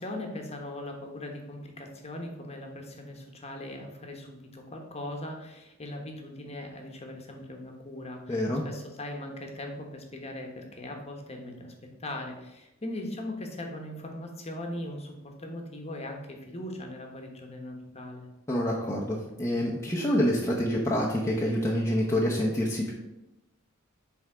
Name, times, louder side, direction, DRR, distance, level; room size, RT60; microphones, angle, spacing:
voice 1, 0.0-11.7 12.0-18.3, left 1 dB, 30° left, 3 dB, 1.1 m, -39 dB
voice 2, 8.3-8.6 18.5-22.9, equal, 15° left, -4 dB, 0.7 m, -27 dB
7.9 x 3.5 x 4.9 m, 0.95 s
head